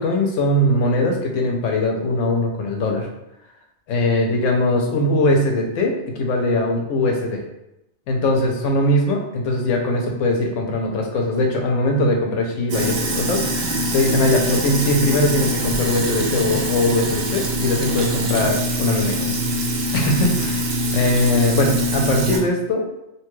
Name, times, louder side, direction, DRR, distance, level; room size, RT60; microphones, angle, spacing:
voice 1, 0.0-3.1 3.9-7.4 8.1-19.3 19.9-22.8, left 1 dB, 75° left, 1 dB, 0.9 m, -21 dB
Sink (filling or washing), 12.7-22.4, right 1 dB, 65° right, 0.7 m, -23 dB
2.9 x 2.2 x 3.0 m, 0.87 s
omnidirectional pair, 1.3 m